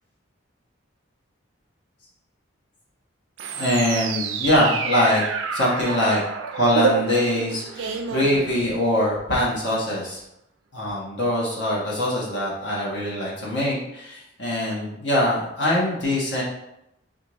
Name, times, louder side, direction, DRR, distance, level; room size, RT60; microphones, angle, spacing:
sound 1, 3.4-9.0, right 6 dB, 80° right, 0.4 m, -29 dB
voice 1, 3.5-5.2 5.5-6.2 6.5-10.2 10.7-16.4, left 1 dB, 60° left, -5 dB, 1.2 m, -23 dB
4.4 x 2.5 x 3.1 m, 0.83 s
head